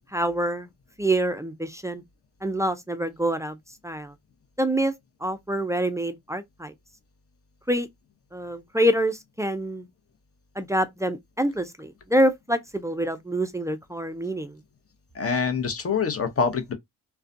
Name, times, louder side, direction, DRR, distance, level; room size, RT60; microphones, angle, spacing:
voice 1, 0.1-0.7 1.0-2.0 2.4-3.6 3.8-4.1 4.6-4.9 5.2-6.7 7.7-7.9 8.3-9.9 10.6-14.5, right 1 dB, 10° right, 0.3 m, -26 dB
voice 2, 15.1-16.7, left 5 dB, 35° left, 0.7 m, -25 dB
2.3 x 2.2 x 2.5 m
supercardioid pair, 60°, 40 cm